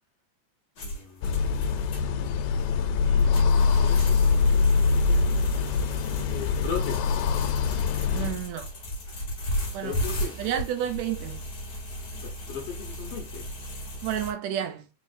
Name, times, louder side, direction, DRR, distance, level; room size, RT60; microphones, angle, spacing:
voice 1, 0.8-2.0 2.7-5.4 6.2-7.2 9.8-10.5 12.1-13.5, left 6 dB, 65° left, 1.7 m, -39 dB
sound 1, 0.8-14.3, equal, 40° left, 1.8 m, -36 dB
sound 2, 1.2-8.4, left 5 dB, 90° left, 2.1 m, -23 dB
voice 2, 8.1-8.8 9.7-10.0 10.4-11.5 14.0-14.9, right 10 dB, 75° right, 1.7 m, -30 dB
5.0 x 3.7 x 2.5 m
omnidirectional pair, 3.5 m